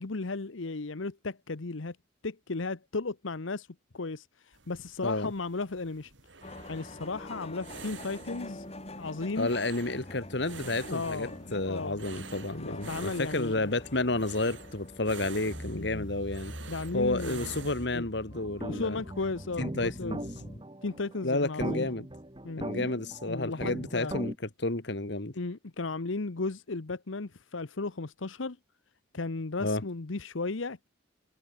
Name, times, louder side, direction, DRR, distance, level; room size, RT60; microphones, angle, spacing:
voice 1, 0.0-2.0 2.2-3.7 3.9-6.1 6.7-8.6 9.0-9.5 10.9-12.0 12.6-13.8 15.7-16.1 16.7-17.5 17.9-18.1 18.7-20.2 20.8-21.9 22.4-22.6 23.3-23.6 23.9-24.1 25.3-28.6 29.1-30.9, left 3 dB, 85° left, 1.0 m, -35 dB
sound 1, 4.5-17.9, right 4 dB, 70° right, 4.5 m, -48 dB
sound 2, 6.4-20.6, left 1 dB, 30° left, 4.0 m, -45 dB
voice 2, 9.4-16.5 16.9-19.0 19.6-20.3 21.2-22.1 22.6-24.3 24.6-25.3 29.6-29.8, left 2 dB, 60° left, 1.9 m, -31 dB
sound 3, 18.3-24.4, right 1 dB, 25° right, 1.7 m, -40 dB
head